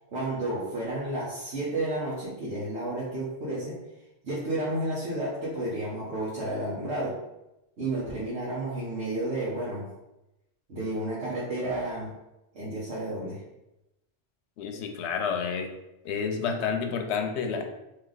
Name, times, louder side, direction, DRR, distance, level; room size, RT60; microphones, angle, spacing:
voice 1, 0.1-3.8 4.2-7.2 7.8-9.9 10.7-12.1 12.5-13.4, right 1 dB, 90° right, -8 dB, 1.3 m, -31 dB
voice 2, 14.6-15.7 16.0-17.7, left 6 dB, 90° left, 5 dB, 0.9 m, -29 dB
3.3 x 2.9 x 3.8 m, 0.93 s
omnidirectional pair, 1.1 m